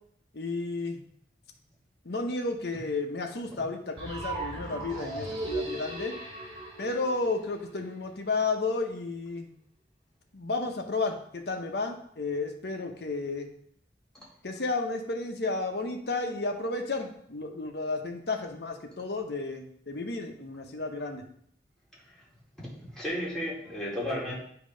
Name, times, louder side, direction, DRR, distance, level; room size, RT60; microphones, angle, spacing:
voice 1, 0.3-1.0 2.0-6.1 6.8-9.5 10.3-13.5 14.4-21.2, left 3 dB, 65° left, 4 dB, 0.8 m, -32 dB
sound 1, 4.0-7.9, right 2 dB, 30° right, 2.8 m, -37 dB
voice 2, 22.6-24.3, equal, 5° left, -6 dB, 1.8 m, -34 dB
8.4 x 2.9 x 5.0 m, 0.66 s
head